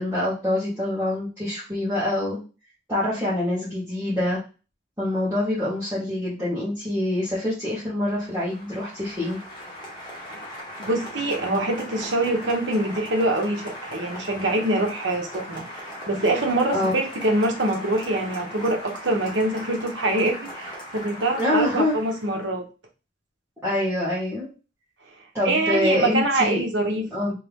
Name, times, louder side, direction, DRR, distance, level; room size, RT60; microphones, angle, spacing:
voice 1, 0.0-2.4 2.9-4.4 5.0-9.4 16.7-16.9 21.4-22.0 23.6-24.5 25.3-26.6 27.1-27.3, left 1 dB, 10° right, -12 dB, 1.7 m, -25 dB
Applause, 8.0-22.5, equal, 25° left, 1.4 m, -39 dB
voice 2, 10.8-15.6 16.1-22.7 25.4-27.3, right 2 dB, 75° right, 2 dB, 1.0 m, -24 dB
3.4 x 3.3 x 3.5 m, 0.32 s
head